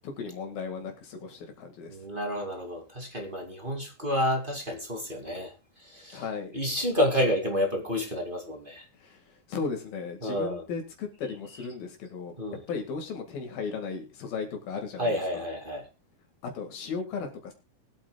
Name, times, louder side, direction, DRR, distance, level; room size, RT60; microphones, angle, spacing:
voice 1, 0.0-2.0 6.1-6.5 8.9-12.4 12.7-15.4 16.4-17.5, left 5 dB, 70° left, 3.7 m, -36 dB
voice 2, 1.9-5.5 5.8-8.9 10.2-10.7 11.2-11.7 12.4-12.6 15.0-15.9, equal, 15° right, 1.9 m, -30 dB
23.0 x 8.8 x 2.3 m
omnidirectional pair, 4.5 m